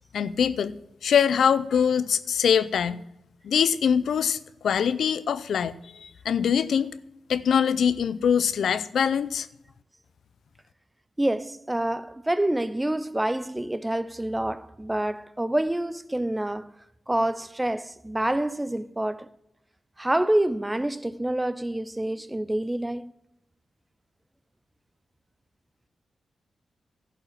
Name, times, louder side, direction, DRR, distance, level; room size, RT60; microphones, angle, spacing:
voice 1, 0.1-0.7 1.0-3.0 3.4-4.4 4.6-6.9 7.3-9.5, left 7 dB, 80° left, 0.5 m, -23 dB
voice 2, 11.2-16.7 17.1-19.3 20.0-23.1, right 1 dB, 15° right, 0.5 m, -27 dB
11.5 x 5.4 x 7.3 m
cardioid pair, 60°, 0 cm